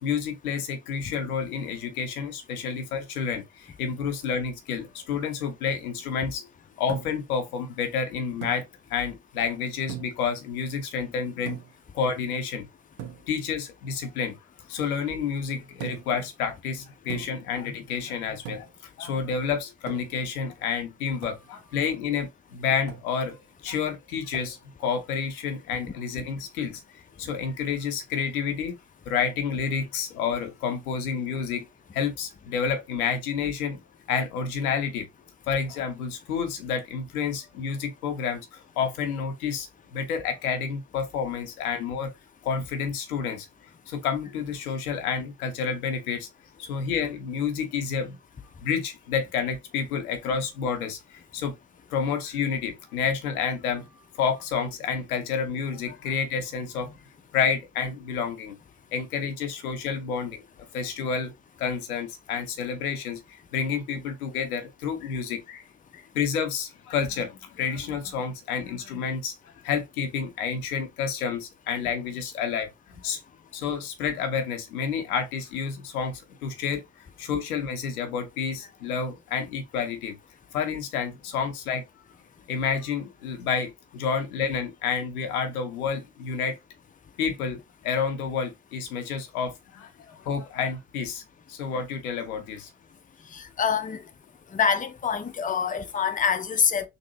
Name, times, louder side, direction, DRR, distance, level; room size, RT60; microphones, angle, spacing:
voice 1, 0.0-6.5 6.8-8.6 8.9-11.6 11.9-12.7 13.3-14.3 14.7-18.7 19.0-23.4 23.6-26.8 27.2-28.7 29.1-31.7 31.9-33.8 34.1-35.1 35.5-38.5 38.8-39.7 39.9-42.1 42.5-43.5 43.9-46.3 46.7-48.2 48.6-51.0 51.3-51.5 51.9-53.9 54.2-57.0 57.3-58.5 58.9-60.4 60.7-61.3 61.6-63.2 63.5-65.6 65.9-69.3 69.6-72.7 73.0-73.2 73.5-76.8 77.2-80.1 80.5-81.8 82.5-86.6 87.2-89.9 90.3-91.2 91.5-92.7, left 6 dB, 85° left, 0.8 m, -29 dB
sound 1, 6.9-7.3 8.4-8.7 9.9-10.3 11.5-11.8 13.0-13.3 15.8-16.2 17.1-17.5 18.4-18.8 19.9-20.3 21.2-21.5 22.9-23.1 24.3-24.7 25.7-26.0, right 10 dB, 75° right, 0.9 m, -39 dB
voice 2, 93.3-94.0 94.5-96.9, left 7 dB, 20° left, 0.6 m, -25 dB
3.9 x 2.6 x 2.8 m
hypercardioid pair, 45°, 42 cm